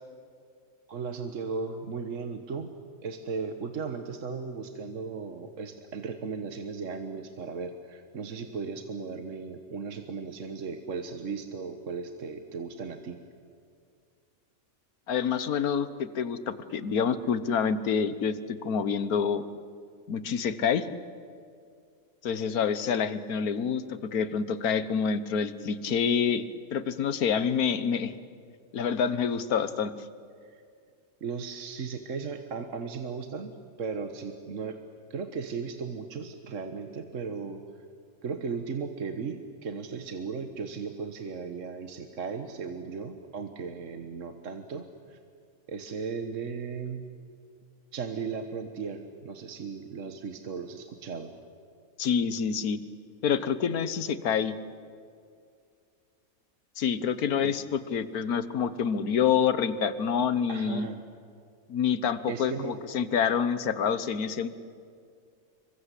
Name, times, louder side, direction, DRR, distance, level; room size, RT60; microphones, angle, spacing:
voice 1, 0.9-2.7 3.0-13.2 30.5-30.6 31.2-33.5 33.8-34.8 35.1-37.6 38.2-45.2 45.7-47.0 47.9-51.3 57.4-57.5 60.5-61.0 62.3-62.8, right 5 dB, 60° right, 7 dB, 1.6 m, -36 dB
voice 2, 15.1-19.4 20.1-20.9 22.2-28.1 28.7-29.9 52.0-52.8 53.2-54.5 56.8-60.9 61.7-64.5, left 7 dB, 90° left, 14 dB, 1.6 m, -27 dB
27.0 x 24.0 x 8.3 m, 2.3 s
omnidirectional pair, 1.5 m